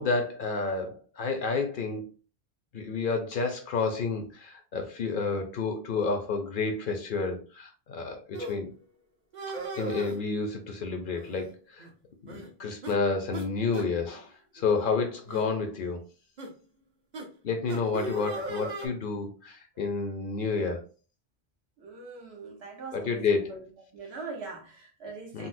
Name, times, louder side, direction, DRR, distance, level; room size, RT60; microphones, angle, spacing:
voice 1, 0.0-2.1 2.7-8.7 9.8-11.9 12.2-14.3 14.5-16.0 17.4-20.8 22.9-23.5 25.3-25.5, left 4 dB, 60° left, 5 dB, 0.7 m, -30 dB
sound 1, 8.3-8.5 9.3-10.2 11.1-11.5 11.8-11.9 12.3-12.5 12.8-13.0 13.3-13.5 13.7-13.9 14.6-14.8 15.3-15.5 16.4-16.5 17.1-17.3 17.7-18.9, right 2 dB, 50° right, 0.7 m, -37 dB
voice 2, 21.8-23.6 23.9-25.5, right 4 dB, 75° right, 0 dB, 1.2 m, -42 dB
3.9 x 2.0 x 2.5 m, 0.38 s
omnidirectional pair, 1.1 m